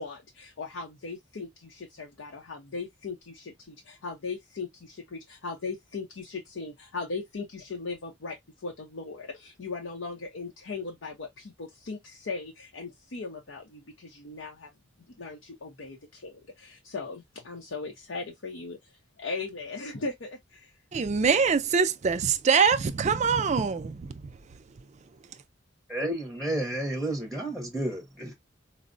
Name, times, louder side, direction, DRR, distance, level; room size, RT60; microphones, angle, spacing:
voice 1, 0.0-14.7 15.1-20.7, left 4 dB, 80° left, 0.7 m, -38 dB
voice 2, 20.9-24.3, right 5 dB, 35° right, 0.4 m, -24 dB
voice 3, 25.9-28.3, right 1 dB, 5° left, 0.7 m, -31 dB
4.4 x 2.0 x 2.5 m
head